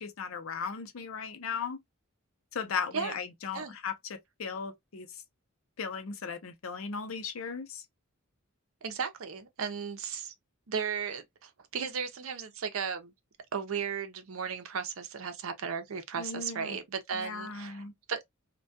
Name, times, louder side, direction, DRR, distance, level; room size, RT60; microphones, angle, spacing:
voice 1, 0.0-1.8 2.5-3.9 4.4-5.1 5.8-7.8 16.2-16.8 17.1-17.9, left 5 dB, 75° left, 0.5 m, -37 dB
voice 2, 8.8-10.3 10.7-13.1 13.5-17.8 18.1-18.2, right 6 dB, 75° right, 0.5 m, -35 dB
2.2 x 2.2 x 2.6 m
head